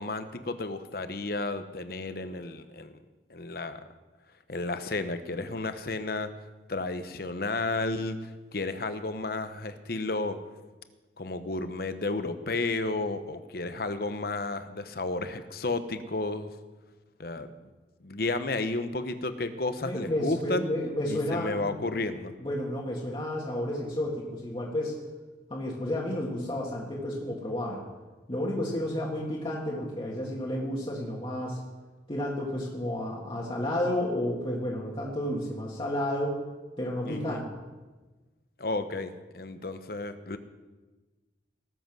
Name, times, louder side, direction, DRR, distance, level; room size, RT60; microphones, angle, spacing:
voice 1, 0.0-3.0 3.3-3.9 4.5-6.3 6.7-10.4 11.2-16.5 17.2-17.5 18.0-20.7 21.1-22.4 37.0-37.4 38.6-40.4, left 2 dB, 55° left, 10 dB, 0.9 m, -32 dB
voice 2, 19.8-21.8 22.4-25.0 25.5-27.8 28.3-31.6 32.1-36.4 36.8-37.6, left 1 dB, 30° left, -4 dB, 1.9 m, -31 dB
18.5 x 8.0 x 6.1 m, 1.2 s
head